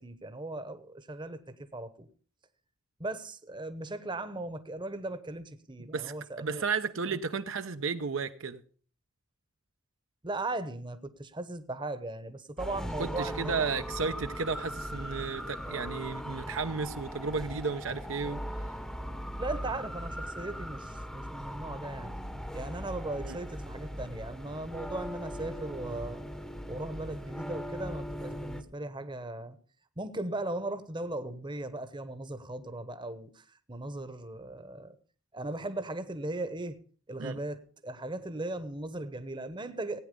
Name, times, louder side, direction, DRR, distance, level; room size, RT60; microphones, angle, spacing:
voice 1, 0.0-2.1 3.0-6.7 7.1-7.2 10.2-13.6 16.4-16.6 19.4-22.1 22.5-26.2 26.7-29.6 30.0-35.0 35.3-36.8 37.1-40.0, right 2 dB, 25° right, 1.1 m, -38 dB
voice 2, 5.9-8.6 13.0-18.4 23.2-23.4 37.2-37.4, right 5 dB, 70° right, 0.9 m, -33 dB
sound 1, 12.6-28.6, equal, 5° left, 0.9 m, -39 dB
17.0 x 9.3 x 5.3 m
head